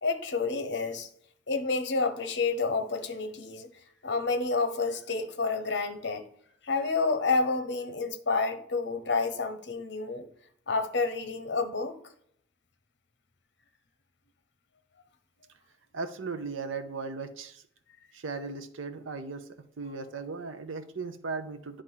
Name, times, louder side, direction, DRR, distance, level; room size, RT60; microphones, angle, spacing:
voice 1, 0.0-1.1 1.5-3.7 4.0-6.3 6.6-10.2 10.7-12.0, left 4 dB, 60° left, 0.9 m, -29 dB
voice 2, 15.9-17.6 18.1-19.4 19.8-21.8, right 4 dB, 85° right, 0.7 m, -37 dB
9.7 x 3.4 x 5.6 m
head